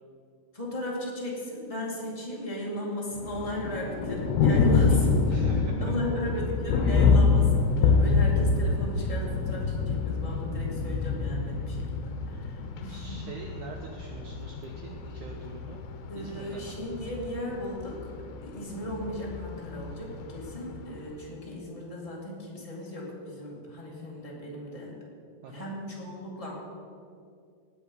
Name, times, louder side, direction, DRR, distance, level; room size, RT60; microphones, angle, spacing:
voice 1, 0.5-13.2 16.1-18.1 18.4-24.9 25.5-26.5, left 1 dB, 15° left, -4 dB, 1.1 m, -36 dB
Thunder, 3.2-21.1, left 4 dB, 75° left, 2.8 m, -27 dB
voice 2, 5.3-5.7 12.8-15.8 16.1-16.7 25.4-25.7, right 3 dB, 75° right, 1 dB, 1.8 m, -44 dB
19.0 x 7.8 x 5.4 m, 2.4 s
omnidirectional pair, 4.7 m